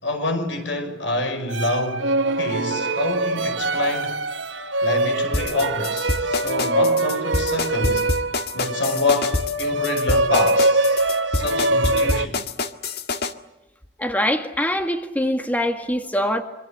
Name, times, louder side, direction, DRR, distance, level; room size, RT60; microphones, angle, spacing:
voice 1, 0.0-4.2 4.8-8.1 8.5-12.4, left 2 dB, 80° left, 5.6 m, -27 dB
sound 1, 1.5-12.3, right 2 dB, 85° right, 1.0 m, -23 dB
sound 2, 5.3-13.3, left 3 dB, 60° left, 1.7 m, -26 dB
voice 2, 14.0-16.4, equal, 10° left, 1.7 m, -23 dB
27.0 x 24.0 x 8.1 m
head